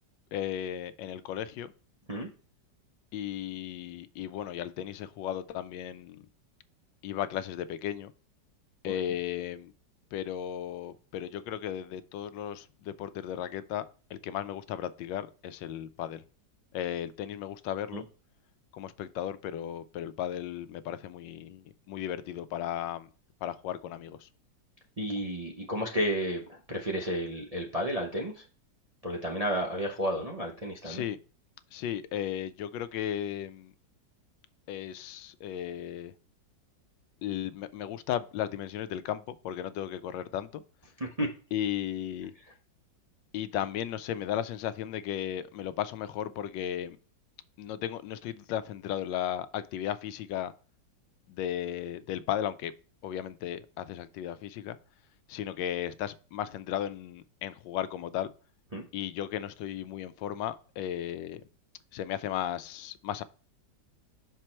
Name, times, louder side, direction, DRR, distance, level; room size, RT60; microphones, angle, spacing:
voice 1, 0.3-1.7 3.1-6.3 7.0-8.1 8.8-9.7 10.1-13.8 14.1-16.2 16.7-18.0 18.7-23.1 23.4-24.3 30.8-31.2 31.7-33.7 34.7-36.1 37.2-40.6 41.5-42.3 43.3-47.0 47.6-50.5 51.3-52.7 53.0-54.8 55.3-58.3 58.9-61.4 61.9-63.2, left 10 dB, 80° left, 1.2 m, -35 dB
voice 2, 25.0-28.4 29.0-31.0 41.0-41.3 58.7-58.8, equal, 35° right, 0.6 m, -32 dB
5.9 x 4.6 x 4.3 m
omnidirectional pair, 2.0 m